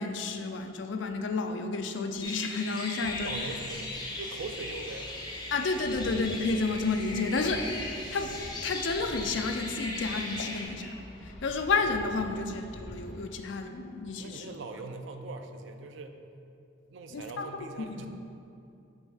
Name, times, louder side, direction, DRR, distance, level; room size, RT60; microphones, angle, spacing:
voice 1, 0.0-3.3 5.5-10.9 11.2-14.5 17.1-18.1, left 3 dB, 65° left, 6 dB, 0.5 m, -31 dB
sound 1, 2.2-10.6, left 2 dB, 20° left, 0.8 m, -38 dB
Boat Water vehicle, 3.0-13.2, equal, 5° left, 1.7 m, -46 dB
voice 2, 3.2-5.1 7.1-7.3 14.2-16.2 16.9-18.1, right 3 dB, 65° right, 6 dB, 0.5 m, -41 dB
5.9 x 4.3 x 5.6 m, 2.7 s
head